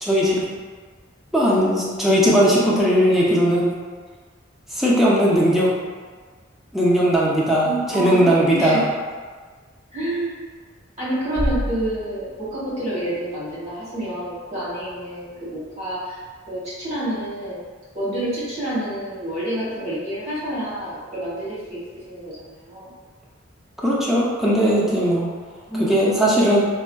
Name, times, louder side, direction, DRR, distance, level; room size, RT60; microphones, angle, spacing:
voice 1, 0.0-0.4 1.3-3.7 4.7-5.7 6.7-8.8 23.8-25.3 25.8-26.6, equal, ahead, -7 dB, 0.5 m, -18 dB
voice 2, 7.6-8.8 9.9-10.4 11.0-16.2 16.5-17.6 17.9-21.8 22.1-22.9 25.7-26.2 26.5-26.6, right 1 dB, 35° right, -10 dB, 1.2 m, -28 dB
sound 1, 11.3-13.3, equal, 65° right, 1.1 m, -29 dB
3.4 x 2.1 x 2.2 m, 1.5 s
head